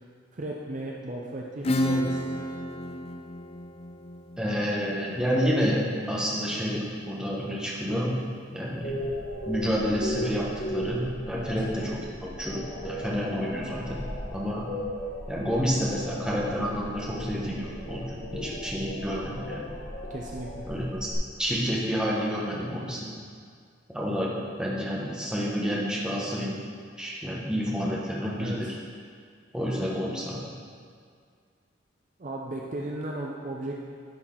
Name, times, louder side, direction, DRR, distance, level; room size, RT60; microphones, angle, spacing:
voice 1, 0.3-2.4 11.3-11.5 20.1-20.7 28.4-28.7 32.2-33.7, right 1 dB, 40° right, -2 dB, 0.5 m, -35 dB
Acoustic guitar / Strum, 1.6-7.0, left 1 dB, 30° left, 0.4 m, -32 dB
voice 2, 4.4-5.8 6.1-8.1 8.5-8.9 9.4-14.0 14.3-14.6 15.3-19.6 20.7-21.0 21.4-23.1 23.9-24.3 24.6-26.6 27.0-28.5 29.5-30.4, equal, 5° right, -5 dB, 1.1 m, -29 dB
sound 1, 8.8-21.1, equal, 65° left, 1.1 m, -37 dB
11.5 x 4.5 x 3.8 m, 2.1 s
head